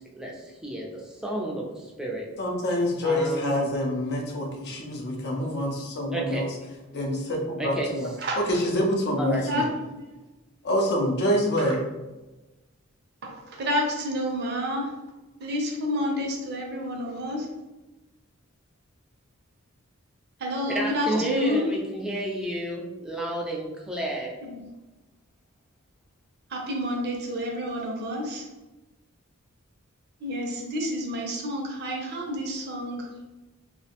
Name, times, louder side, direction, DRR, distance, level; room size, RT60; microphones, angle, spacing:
voice 1, 0.2-2.3 3.0-3.6 6.1-6.5 7.6-8.3 9.2-9.4 20.7-24.3, right 1 dB, 5° right, -2 dB, 0.4 m, -31 dB
voice 2, 2.4-6.5 6.9-8.1 8.4-9.6 10.6-11.8, equal, 50° left, 1 dB, 0.5 m, -26 dB
voice 3, 13.6-14.9 15.4-17.5 20.4-21.6 24.4-24.6 26.5-28.4 30.2-33.0, equal, 50° right, 0 dB, 0.5 m, -29 dB
2.5 x 2.1 x 2.8 m, 1.1 s
head